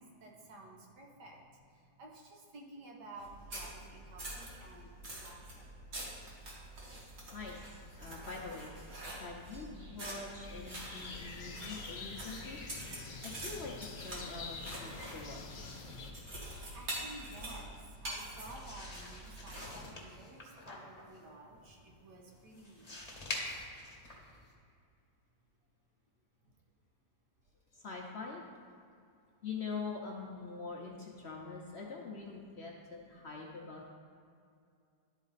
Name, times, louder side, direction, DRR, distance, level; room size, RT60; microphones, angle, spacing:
voice 1, 0.0-1.4 2.0-5.7 16.7-17.7 18.0-23.0, right 2 dB, 80° right, -1 dB, 1.7 m, -52 dB
sound 1, 3.2-19.8, right 1 dB, 55° right, 2.1 m, -46 dB
voice 2, 7.3-8.7 9.0-12.6 13.0-15.7 21.2-21.3 27.7-28.4 29.4-33.9, left 4 dB, 55° left, -1 dB, 0.8 m, -44 dB
sound 2, 10.4-16.1, left 4 dB, 75° left, 0.4 m, -47 dB
sound 3, 18.4-24.5, left 2 dB, 25° left, 1.0 m, -46 dB
12.0 x 4.1 x 4.0 m, 2.4 s
omnidirectional pair, 1.8 m